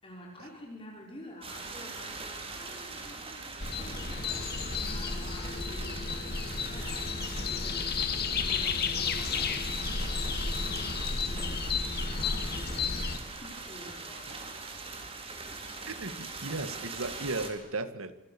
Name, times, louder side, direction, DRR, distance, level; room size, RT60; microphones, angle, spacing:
voice 1, 0.0-13.0 13.2-14.4, equal, 25° left, -1 dB, 5.1 m, -49 dB
sound 1, 1.4-17.5, right 3 dB, 30° right, 4.3 m, -42 dB
sound 2, 3.6-13.2, left 5 dB, 50° left, 2.2 m, -32 dB
voice 2, 15.9-18.1, right 3 dB, 85° right, 12 dB, 2.0 m, -36 dB
27.5 x 25.5 x 7.1 m, 0.94 s
head